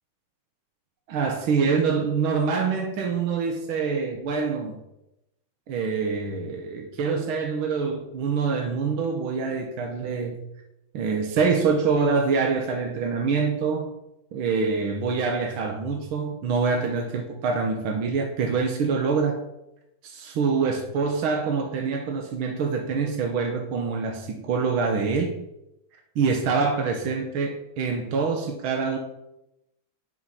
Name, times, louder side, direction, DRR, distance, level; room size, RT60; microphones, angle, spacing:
voice 1, 1.1-4.8 5.7-10.4 10.9-14.0 14.3-19.5 20.0-25.4 26.2-29.0, right 5 dB, 85° right, 3 dB, 1.9 m, -25 dB
9.4 x 5.4 x 5.5 m, 0.86 s
omnidirectional pair, 2.2 m